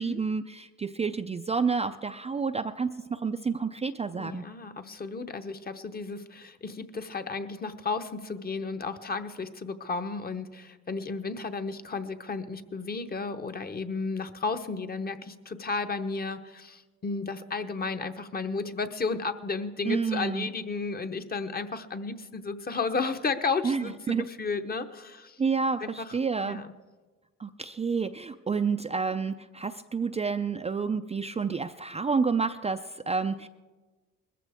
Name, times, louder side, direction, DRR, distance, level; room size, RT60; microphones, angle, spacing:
voice 1, 0.0-4.5 19.9-20.5 23.6-24.3 25.4-26.6 27.4-33.5, right 5 dB, 20° right, 8 dB, 0.4 m, -29 dB
voice 2, 4.2-25.4 25.8-26.2 26.4-26.7, left 4 dB, 30° left, 8 dB, 0.9 m, -33 dB
20.0 x 14.5 x 3.5 m, 1.3 s
cardioid pair, 90°, 30 cm